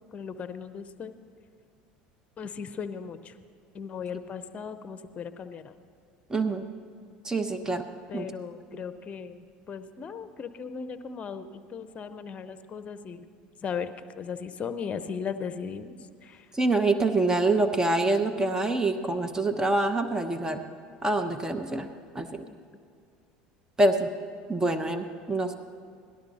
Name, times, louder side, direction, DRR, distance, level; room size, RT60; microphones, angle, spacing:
voice 1, 0.1-1.1 2.4-3.3 3.7-5.8 8.1-13.2 13.6-13.9 14.2-16.0 16.2-16.4 22.4-22.5, left 6 dB, 35° left, 10 dB, 0.9 m, -37 dB
voice 2, 6.3-6.6 7.2-7.9 8.1-8.3 8.7-8.8 16.5-20.6 21.0-21.9 22.1-22.3 23.8-24.1 24.5-25.6, right 2 dB, 15° right, 7 dB, 1.0 m, -25 dB
17.0 x 12.0 x 4.2 m, 2.3 s
hypercardioid pair, 85°, 4 cm